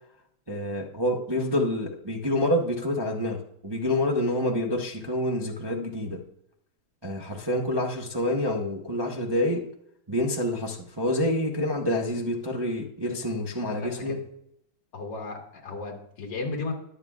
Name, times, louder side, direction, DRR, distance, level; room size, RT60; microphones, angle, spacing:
voice 1, 0.5-3.4 3.6-6.2 7.0-9.7 10.1-14.2, left 1 dB, 20° right, -1 dB, 0.6 m, -27 dB
voice 2, 13.8-14.2 14.9-16.7, left 3 dB, 55° left, 1 dB, 2.5 m, -34 dB
22.0 x 7.8 x 2.4 m, 0.74 s
omnidirectional pair, 2.3 m